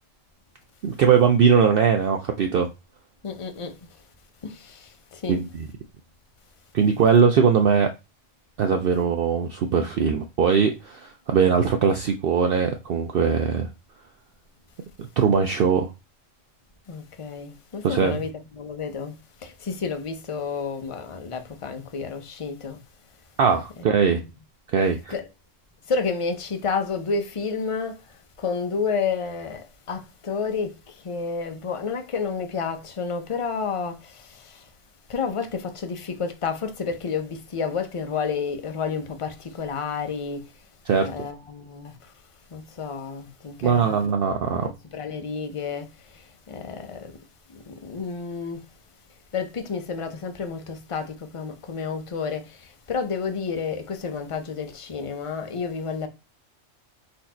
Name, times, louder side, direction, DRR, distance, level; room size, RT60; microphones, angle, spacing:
voice 1, 0.8-2.7 5.3-5.7 6.7-7.9 8.6-13.7 15.0-15.9 17.8-18.2 23.4-24.2 24.7-25.1 40.9-41.1 43.6-44.7, right 6 dB, 60° right, 0.6 m, -20 dB
voice 2, 3.2-4.0 4.4-5.4 16.9-22.8 24.2-24.3 25.1-25.3 25.9-34.7 35.1-40.7 40.9-42.1 42.5-44.0 44.4-47.2 47.5-48.7 49.3-56.1, left 5 dB, 35° left, 0.5 m, -31 dB
4.2 x 2.8 x 4.3 m
omnidirectional pair, 1.3 m